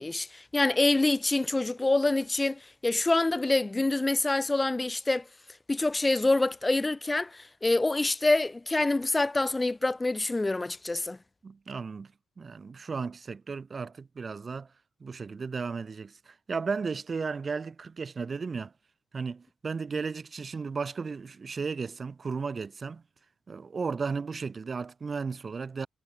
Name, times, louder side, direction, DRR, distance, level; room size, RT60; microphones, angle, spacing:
voice 1, 0.0-5.2 5.7-11.2, left 2 dB, 15° left, 3.1 m, -26 dB
voice 2, 11.4-12.1 12.4-14.7 15.0-18.7 19.1-23.0 23.5-25.9, right 5 dB, 30° right, 7.1 m, -34 dB
wide cardioid pair, 165°, 0 cm